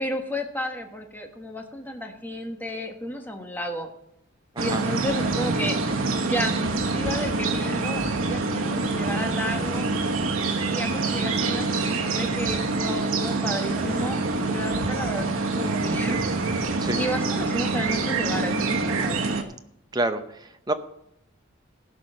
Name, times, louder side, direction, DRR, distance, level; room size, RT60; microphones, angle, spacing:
voice 1, 0.0-3.9 4.6-5.9 6.2-9.9 10.6-16.2 17.0-19.3, equal, 10° left, 3 dB, 1.3 m, -32 dB
sound 1, 4.6-19.4, right 3 dB, 85° right, 1.2 m, -26 dB
voice 2, 19.9-20.7, right 2 dB, 20° right, 8 dB, 0.8 m, -28 dB
15.5 x 5.6 x 6.5 m, 0.77 s
head